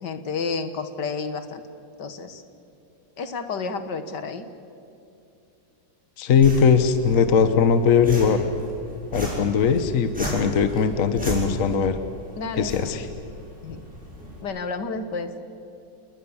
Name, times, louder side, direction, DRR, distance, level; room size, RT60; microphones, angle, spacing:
voice 1, 0.0-1.6 2.0-2.4 3.2-4.5 12.4-12.8 13.6-13.8 14.4-15.3, left 4 dB, 65° left, 9 dB, 1.9 m, -30 dB
voice 2, 6.2-8.4 9.1-12.0 12.6-13.1, left 6 dB, 50° left, 10 dB, 1.4 m, -20 dB
sound 1, 6.4-14.4, equal, 5° right, 7.0 m, -35 dB
29.0 x 20.5 x 7.2 m, 2.7 s
omnidirectional pair, 2.0 m